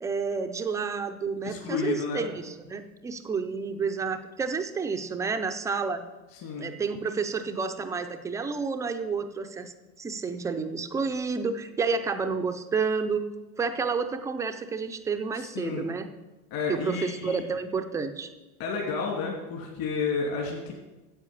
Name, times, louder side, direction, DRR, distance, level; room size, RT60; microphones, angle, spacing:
voice 1, 0.0-6.0 6.6-13.3 13.6-16.1 16.7-18.3, right 5 dB, 5° right, 7 dB, 0.4 m, -30 dB
voice 2, 1.4-2.3 6.3-6.7 15.3-15.9 16.5-17.4 18.6-20.7, left 5 dB, 50° left, -1 dB, 2.6 m, -31 dB
9.8 x 7.9 x 6.8 m, 1.1 s
supercardioid pair, 130°, 46 cm